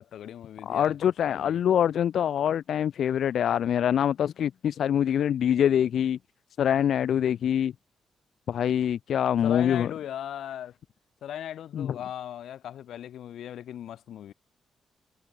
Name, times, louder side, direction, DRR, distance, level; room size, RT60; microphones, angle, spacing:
voice 1, 0.0-1.0 1.3-1.6 9.4-10.7 11.2-14.3, left 10 dB, 85° left, 5.7 m, -38 dB
voice 2, 0.7-6.2 6.6-7.7 8.5-9.9 11.7-11.9, left 9 dB, 70° left, 0.6 m, -24 dB
wide cardioid pair, 150°, 0 cm